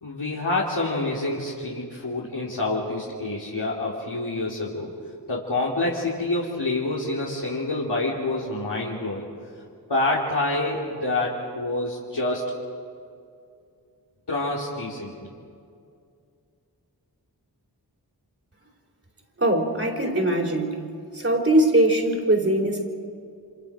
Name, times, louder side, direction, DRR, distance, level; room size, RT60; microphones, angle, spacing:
voice 1, 0.0-4.9 5.3-9.3 9.9-12.4 14.3-15.1, left 2 dB, 75° left, -6 dB, 3.2 m, -27 dB
voice 2, 19.4-20.8 21.1-22.9, right 1 dB, 35° right, 0 dB, 4.1 m, -21 dB
29.5 x 26.5 x 5.0 m, 2.4 s
wide cardioid pair, 45°, 41 cm